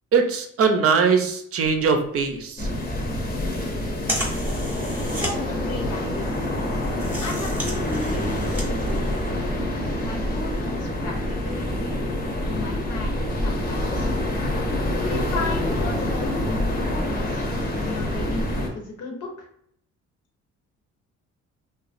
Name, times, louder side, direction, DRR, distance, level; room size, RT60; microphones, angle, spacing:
voice 1, 0.1-2.7, right 5 dB, 50° right, 5 dB, 0.5 m, -21 dB
sound 1, 1.6-9.5, right 1 dB, 5° right, 0.9 m, -35 dB
sound 2, 2.6-18.7, left 1 dB, 30° left, 0.7 m, -26 dB
voice 2, 5.1-6.4 7.2-9.1 10.0-12.1 12.5-14.1 14.9-19.5, left 2 dB, 75° left, 1 dB, 0.8 m, -34 dB
2.9 x 2.3 x 2.5 m, 0.68 s
cardioid pair, 90°, 30 cm